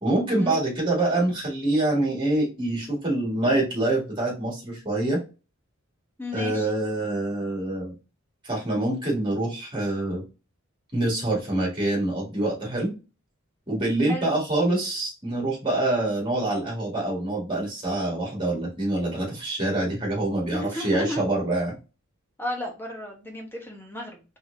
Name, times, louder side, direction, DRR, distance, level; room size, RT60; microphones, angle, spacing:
voice 1, 0.0-5.2 6.3-7.9 8.4-10.2 10.9-12.9 13.7-21.7, right 2 dB, 25° right, -2 dB, 1.9 m, -25 dB
voice 2, 6.2-6.7 14.1-14.3 20.5-21.2 22.4-24.2, left 1 dB, 10° left, 1 dB, 1.1 m, -33 dB
4.3 x 3.7 x 2.6 m, 0.30 s
head